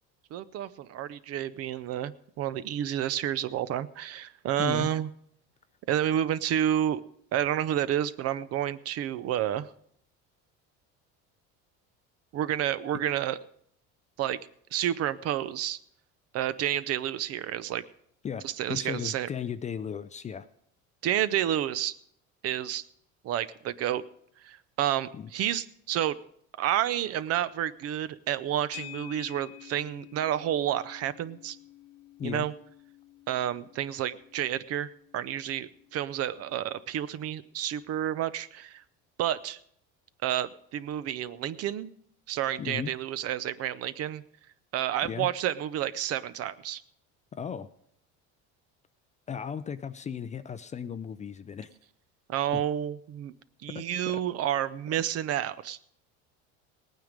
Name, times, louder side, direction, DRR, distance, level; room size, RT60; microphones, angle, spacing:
voice 1, 0.3-5.1 5.9-7.0 7.3-9.7 12.3-13.4 14.2-14.4 14.7-15.8 16.3-17.8 18.4-19.3 21.0-22.0 22.4-22.9 23.2-24.0 24.4-26.2 26.6-31.6 32.2-32.5 33.3-38.8 39.2-39.6 40.2-41.9 42.3-44.2 44.7-46.8 52.3-53.3 53.6-55.8, right 11 dB, 50° right, 16 dB, 0.7 m, -30 dB
voice 2, 18.2-20.5 25.1-25.3 32.2-32.5 42.6-42.9 45.1-45.3 47.3-47.7 49.3-51.7 52.5-52.6 53.7-53.8, left 7 dB, 25° left, 13 dB, 0.4 m, -35 dB
sound 1, 28.7-37.2, left 16 dB, 85° left, 1.1 m, -50 dB
18.5 x 9.3 x 5.1 m, 0.70 s
cardioid pair, 135°, 31 cm